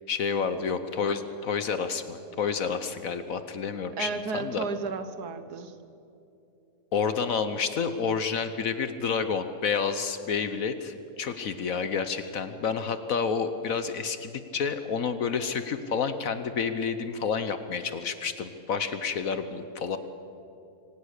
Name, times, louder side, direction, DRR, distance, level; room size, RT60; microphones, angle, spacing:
voice 1, 0.1-4.7 6.9-20.0, left 6 dB, 60° left, 10 dB, 1.2 m, -29 dB
voice 2, 4.0-5.8, right 4 dB, 75° right, 10 dB, 1.7 m, -33 dB
24.5 x 18.5 x 6.6 m, 2.7 s
omnidirectional pair, 1.7 m